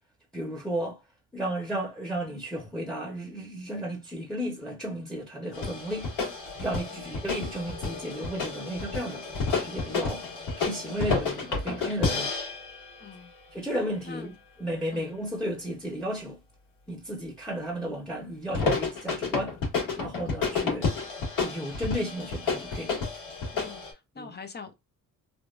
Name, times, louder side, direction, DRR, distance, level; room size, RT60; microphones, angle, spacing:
voice 1, 0.3-1.0 1.3-6.1 6.6-9.2 9.6-10.2 10.6-12.3 13.5-14.3 14.6-16.4 16.9-19.5 20.0-20.9 21.4-23.0 24.2-24.4, right 1 dB, ahead, 1.0 m, -33 dB
sound 1, 5.5-13.2 18.5-23.9, left 4 dB, 65° left, 1.8 m, -31 dB
voice 2, 13.0-13.3 14.0-14.4 14.9-15.2 20.2-20.4 23.5-24.7, left 5 dB, 30° left, 0.7 m, -45 dB
3.4 x 2.4 x 2.4 m
cardioid pair, 100°, 35 cm